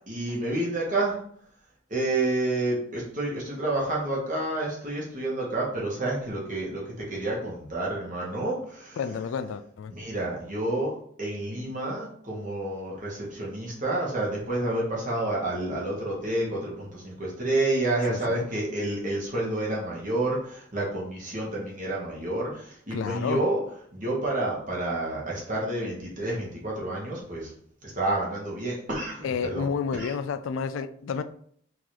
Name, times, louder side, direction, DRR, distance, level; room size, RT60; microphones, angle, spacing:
voice 1, 0.1-1.1 1.9-6.8 7.1-9.0 9.9-10.9 11.2-22.5 22.9-23.6 23.9-27.4 28.0-29.7 29.9-30.1, right 2 dB, 40° right, -4 dB, 1.5 m, -29 dB
voice 2, 9.0-9.9 18.1-18.5 22.9-23.4 29.2-31.2, left 6 dB, 70° left, 12 dB, 0.3 m, -30 dB
3.8 x 2.9 x 4.7 m, 0.62 s
head